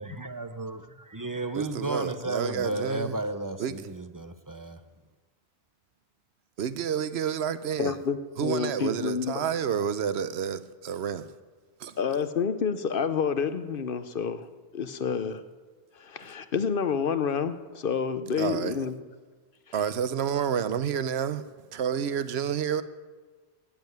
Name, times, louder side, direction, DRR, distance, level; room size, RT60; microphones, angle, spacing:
voice 1, 0.0-4.8, right 2 dB, 25° right, 0.5 m, -33 dB
voice 2, 1.5-3.2 3.6-3.9 6.6-8.0 8.4-11.4 11.8-12.0 18.4-18.8 19.7-22.8, right 8 dB, 85° right, 1.0 m, -29 dB
voice 3, 7.8-9.5 12.0-14.5 14.7-15.4 16.0-19.0, left 6 dB, 60° left, 0.9 m, -29 dB
14.0 x 7.6 x 9.2 m
omnidirectional pair, 1.1 m